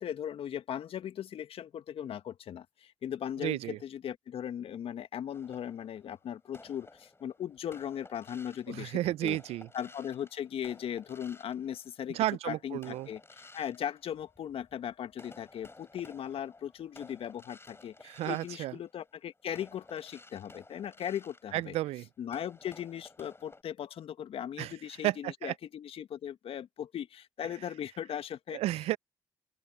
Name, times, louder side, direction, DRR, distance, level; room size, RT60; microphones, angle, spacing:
voice 1, 0.0-9.4 9.7-21.8 22.2-28.6, left 9 dB, 60° left, 1.8 m, -38 dB
voice 2, 3.4-3.8 8.7-9.7 12.1-13.1 18.0-18.7 21.5-22.1 24.6-24.7 25.0-25.5 28.5-29.0, right 15 dB, 70° right, 0.7 m, -32 dB
sound 1, 5.3-12.3 12.8-14.8 15.1-23.6, left 2 dB, 25° left, 6.3 m, -55 dB
open air
hypercardioid pair, 45°, 11 cm